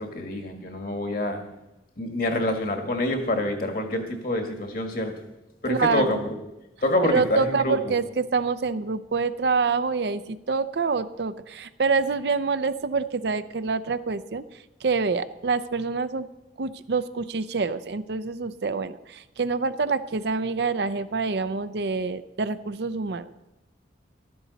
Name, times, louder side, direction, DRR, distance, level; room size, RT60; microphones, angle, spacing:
voice 1, 0.0-1.4 2.0-5.1 5.6-6.4 6.8-7.9, left 1 dB, 50° left, 4 dB, 1.6 m, -26 dB
voice 2, 5.7-6.2 7.0-16.3 16.6-23.3, right 4 dB, 65° right, 12 dB, 0.5 m, -26 dB
14.0 x 12.5 x 4.0 m, 0.95 s
head